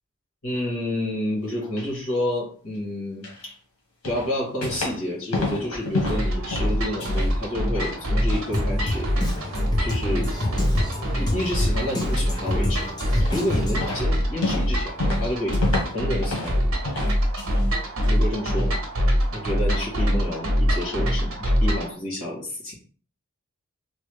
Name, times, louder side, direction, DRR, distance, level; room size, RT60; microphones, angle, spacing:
voice 1, 0.4-3.6 4.0-9.1 9.8-10.3 11.1-12.9 13.3-16.6 18.0-18.7 19.3-22.7, left 1 dB, 70° left, -2 dB, 1.5 m, -29 dB
sound 1, 1.4-1.9 3.2-3.5 4.0-5.1 5.3-7.4 7.7-8.5 8.9-9.5 9.9-10.0 10.5-10.7 11.7-11.8 12.3-12.7 13.2-13.6 13.8-16.6 16.8-17.7 18.0-18.7 19.1-19.2 19.7-19.9, left 2 dB, 85° left, 1.2 m, -31 dB
sound 2, 6.1-21.9, equal, 65° right, 0.9 m, -24 dB
Drum kit, 8.5-14.0, left 1 dB, 20° left, 0.5 m, -29 dB
3.1 x 2.3 x 3.2 m, 0.42 s
head